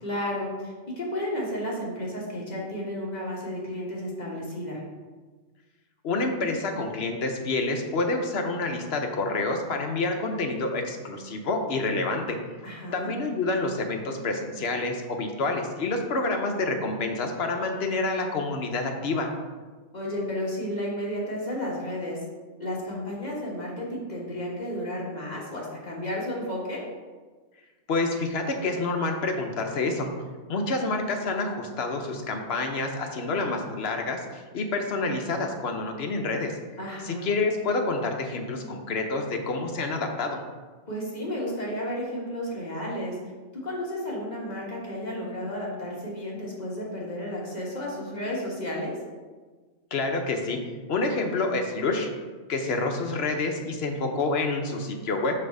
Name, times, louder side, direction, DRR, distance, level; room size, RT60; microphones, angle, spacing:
voice 1, 0.0-4.8 12.6-13.1 19.9-22.2 22.6-26.8 36.8-37.3 40.9-43.1 43.6-48.9, left 1 dB, 35° left, -4 dB, 1.4 m, -32 dB
voice 2, 6.0-12.4 12.9-19.3 27.9-30.1 30.5-36.6 37.0-40.4 49.9-50.6 50.9-52.1 52.5-55.3, left 3 dB, 55° left, 3 dB, 0.9 m, -28 dB
5.5 x 3.4 x 5.3 m, 1.3 s
omnidirectional pair, 1.4 m